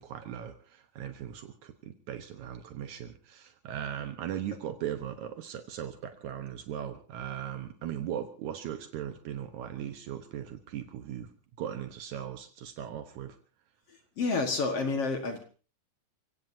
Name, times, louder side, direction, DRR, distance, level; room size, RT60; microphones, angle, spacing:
voice 1, 0.0-11.3 11.6-13.4, right 10 dB, 75° right, 8 dB, 2.5 m, -38 dB
voice 2, 14.2-15.4, left 4 dB, 55° left, 6 dB, 2.5 m, -29 dB
30.0 x 17.0 x 2.7 m, 0.37 s
omnidirectional pair, 3.4 m